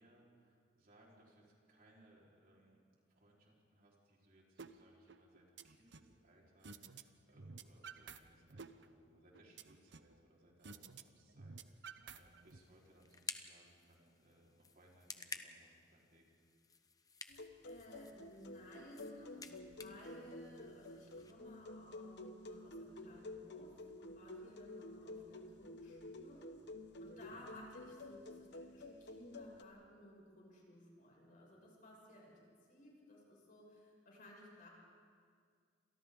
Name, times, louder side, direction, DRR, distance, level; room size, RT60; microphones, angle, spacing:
voice 1, 0.0-2.8 3.1-16.2 27.1-27.5, right 1 dB, 50° right, -3 dB, 4.4 m, -67 dB
sound 1, 4.6-4.7 5.1-6.1 6.6-7.0 7.3-8.2 8.5-10.1 10.6-11.0 11.3-12.6, right 5 dB, 70° right, 0.8 m, -52 dB
sound 2, 12.1-21.3, left 5 dB, 20° left, 0.9 m, -53 dB
sound 3, 17.3-29.6, left 2 dB, 65° left, 1.2 m, -51 dB
voice 2, 17.6-26.5 27.0-34.7, left 1 dB, 50° left, -3 dB, 6.7 m, -58 dB
29.5 x 27.0 x 3.9 m, 2.1 s
head